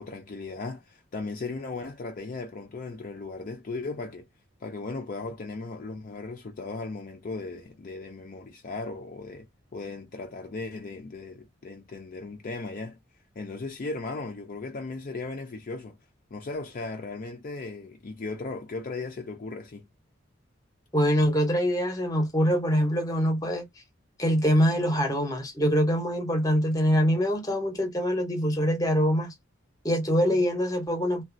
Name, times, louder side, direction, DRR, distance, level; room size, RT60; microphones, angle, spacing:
voice 1, 0.0-4.2 4.6-9.5 9.7-13.0 13.4-16.0 16.3-19.9, left 3 dB, 45° left, 0.4 m, -37 dB
voice 2, 20.9-23.6 24.2-29.3 29.8-31.2, equal, 20° left, 0.8 m, -24 dB
3.1 x 2.3 x 2.5 m
head